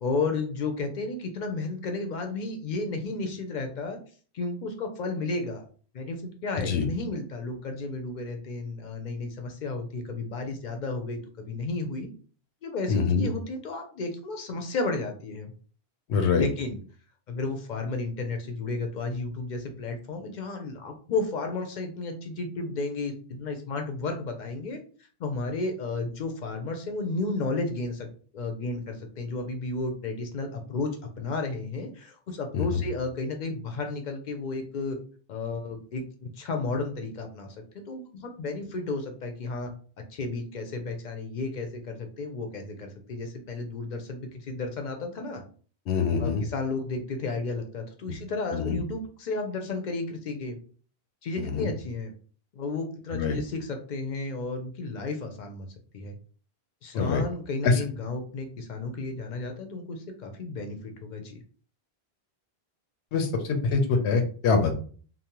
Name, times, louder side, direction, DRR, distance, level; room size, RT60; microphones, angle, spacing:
voice 1, 0.0-4.0 4.3-5.6 5.9-12.1 12.6-15.5 16.4-16.8 17.3-24.8 25.2-28.1 28.3-30.9 31.2-35.0 35.3-36.0 36.4-37.5 37.7-39.7 40.1-45.4 46.2-50.6 51.2-52.1 52.5-55.7 55.9-56.1 56.8-61.4, left 3 dB, 55° left, 5 dB, 0.5 m, -33 dB
voice 2, 6.6-6.9 12.9-13.3 16.1-16.5 32.5-32.8 45.9-46.4 48.5-48.8 51.4-51.7 53.1-53.4 56.9-57.2 57.6-57.8 63.1-64.7, left 4 dB, 85° left, 5 dB, 0.9 m, -24 dB
2.6 x 2.0 x 2.9 m, 0.42 s
omnidirectional pair, 1.1 m